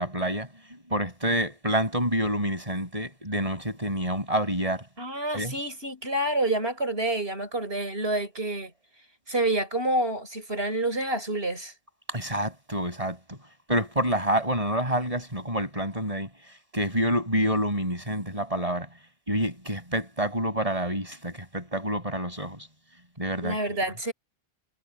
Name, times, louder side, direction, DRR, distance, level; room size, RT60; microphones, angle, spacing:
voice 1, 0.0-4.8 5.3-5.5 12.1-13.4 13.7-16.3 16.7-18.9 19.3-22.7 23.2-23.8, equal, 35° right, 6.7 m, -28 dB
voice 2, 5.0-8.7 9.3-11.7 23.4-24.1, right 1 dB, 70° right, 6.8 m, -28 dB
omnidirectional pair, 1.1 m